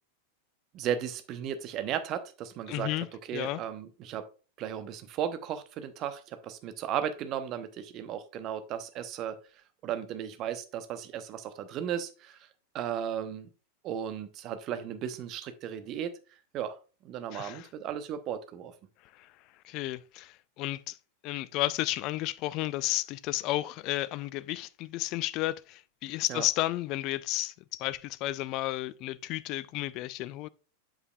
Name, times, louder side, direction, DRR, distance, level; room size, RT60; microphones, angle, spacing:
voice 1, 0.7-2.9 3.3-4.2 4.6-9.4 9.8-12.4 12.7-13.5 13.8-16.1 16.5-16.8 17.0-18.7 26.3-26.5, right 9 dB, 35° right, 0.7 m, -35 dB
voice 2, 2.7-3.1 3.3-3.6 17.3-17.7 19.1-19.3 19.6-21.0 21.2-30.5, left 16 dB, 40° left, 0.3 m, -32 dB
8.1 x 7.3 x 2.3 m
figure-of-eight pair, 90°, 0 cm